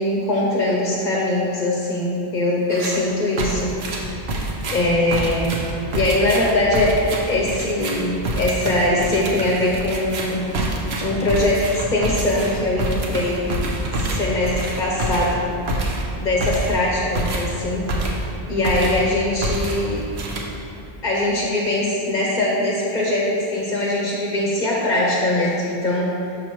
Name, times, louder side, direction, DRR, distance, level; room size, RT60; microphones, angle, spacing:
voice 1, 0.0-3.8 4.7-5.6 5.9-10.5 11.0-13.5 14.0-15.4 16.2-17.9 18.5-20.0 21.0-26.1, left 1 dB, 50° left, -3 dB, 0.8 m, -21 dB
sound 1, 2.7-3.0 3.4-18.4 18.6-19.1 19.4-20.8, right 1 dB, 80° right, 1.1 m, -26 dB
6.3 x 6.0 x 3.0 m, 2.6 s
omnidirectional pair, 1.1 m